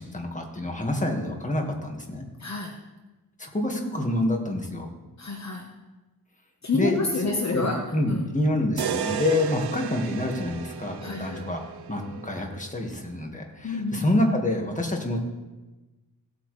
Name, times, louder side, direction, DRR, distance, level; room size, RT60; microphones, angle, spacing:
voice 1, 0.0-2.3 3.4-4.9 6.7-7.0 7.5-15.2, left 1 dB, 20° left, 2 dB, 1.7 m, -27 dB
voice 2, 2.4-2.7 5.2-5.7 6.6-7.8 8.1-8.3 11.0-11.4 13.6-14.1, left 3 dB, 45° left, 1 dB, 1.1 m, -28 dB
sound 1, 8.8-12.8, right 9 dB, 70° right, 0.8 m, -34 dB
16.5 x 8.4 x 3.2 m, 1.1 s
wide cardioid pair, 105°, 40 cm